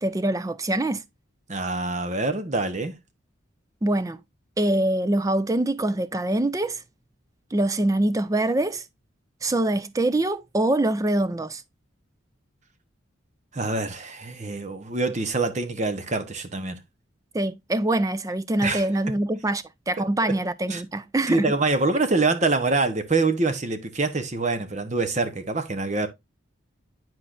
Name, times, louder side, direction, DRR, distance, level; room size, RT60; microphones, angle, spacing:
voice 1, 0.0-1.0 3.8-4.2 4.6-6.8 7.5-8.8 9.4-11.6 17.3-21.5, right 1 dB, 15° right, 0.4 m, -24 dB
voice 2, 1.5-2.9 13.5-16.8 18.6-18.9 20.2-20.3 20.7-20.8 21.3-26.1, right 3 dB, 35° right, 0.9 m, -25 dB
10.0 x 4.4 x 2.5 m
head